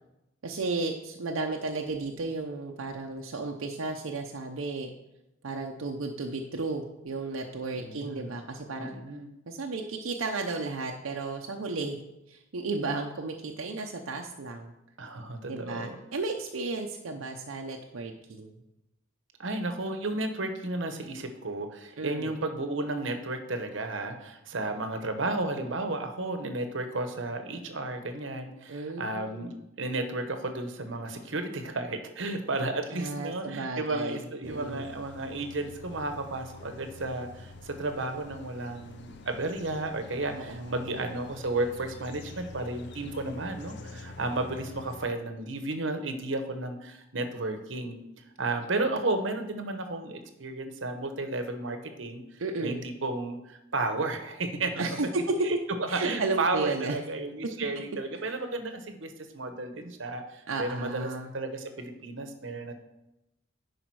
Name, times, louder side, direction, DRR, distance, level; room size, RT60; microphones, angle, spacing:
voice 1, 0.4-4.9 5.4-9.0 9.5-12.0 12.3-14.7 15.5-18.5 22.0-22.3 28.7-29.6 32.9-34.9 40.3-41.0 52.4-52.8 54.8-55.3 55.9-57.0 60.5-61.3, right 3 dB, 85° right, 2 dB, 0.7 m, -34 dB
voice 2, 7.8-8.3 8.8-9.3 15.0-16.0 19.4-47.9 48.4-55.0 55.4-55.6 55.9-62.7, right 2 dB, 65° right, 7 dB, 1.0 m, -33 dB
sound 1, 34.4-45.1, left 2 dB, 55° left, 0.6 m, -46 dB
10.5 x 5.0 x 4.7 m, 0.91 s
head